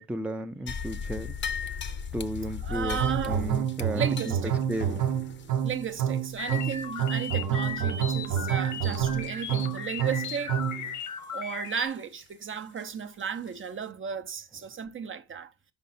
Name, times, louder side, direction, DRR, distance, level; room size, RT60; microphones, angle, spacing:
voice 1, 0.0-1.3 2.1-3.0 3.3-4.3 4.7-5.0, right 1 dB, 5° right, 0.5 m, -33 dB
sound 1, 0.7-7.3 7.6-7.7 8.2-8.5 8.9-9.3 9.6-9.7 10.3-10.4 12.8-12.9 13.5-13.6, left 7 dB, 40° left, 0.7 m, -37 dB
voice 2, 2.6-3.5 3.9-4.6 5.6-10.6 11.3-15.5, right 7 dB, 45° right, 0.7 m, -34 dB
sound 2, 3.0-10.9, right 9 dB, 85° right, 0.9 m, -28 dB
sound 3, 6.4-11.9, left 7 dB, 80° left, 1.2 m, -37 dB
5.4 x 5.2 x 4.1 m
cardioid pair, 90°, 30 cm